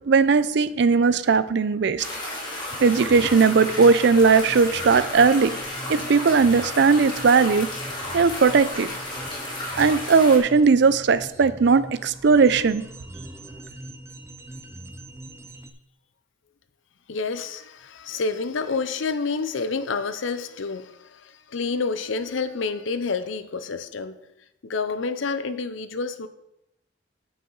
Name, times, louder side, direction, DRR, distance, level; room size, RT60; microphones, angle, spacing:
voice 1, 0.1-2.1 2.8-5.6 5.9-7.7 8.1-8.9 9.8-12.8, right 5 dB, 60° right, 15 dB, 0.4 m, -18 dB
sound 1, 2.0-10.4, left 1 dB, 25° left, 2.4 m, -33 dB
sound 2, 2.7-15.7, right 1 dB, 15° right, 0.5 m, -42 dB
voice 2, 17.1-24.2 24.6-26.3, left 4 dB, 75° left, 12 dB, 0.6 m, -28 dB
8.8 x 7.9 x 3.9 m, 0.84 s
head